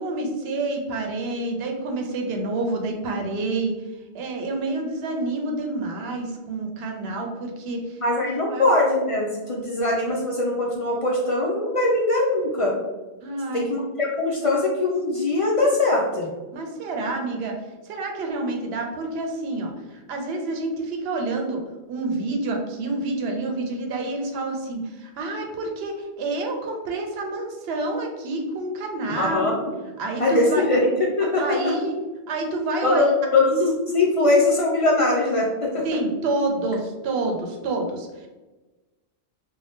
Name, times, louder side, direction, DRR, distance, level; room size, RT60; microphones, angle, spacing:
voice 1, 0.0-3.7 4.1-7.8 8.5-8.7 13.2-13.7 16.5-17.5 17.9-21.6 21.9-29.5 30.0-30.6 31.4-31.9 32.3-33.1 35.8-38.1, right 2 dB, 70° right, 3 dB, 0.8 m, -28 dB
voice 2, 8.0-12.7 13.5-16.3 29.1-29.7 30.2-31.7 32.8-33.1 33.3-35.8, left 2 dB, 60° left, -3 dB, 0.3 m, -21 dB
2.6 x 2.2 x 3.3 m, 1.2 s
omnidirectional pair, 1.1 m